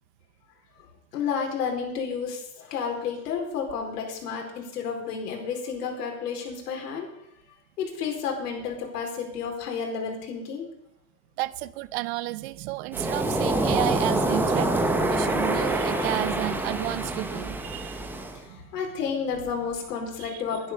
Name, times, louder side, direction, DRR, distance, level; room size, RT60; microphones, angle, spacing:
voice 1, 1.1-7.1 7.8-10.7 18.3-20.7, left 6 dB, 75° left, 2 dB, 4.3 m, -31 dB
voice 2, 11.4-18.1 18.5-18.7 20.2-20.4, right 18 dB, 45° right, 16 dB, 0.7 m, -32 dB
Waves surf, 12.9-18.4, right 2 dB, 5° right, 0.8 m, -26 dB
11.0 x 10.5 x 6.7 m, 0.78 s
supercardioid pair, 150°, 48 cm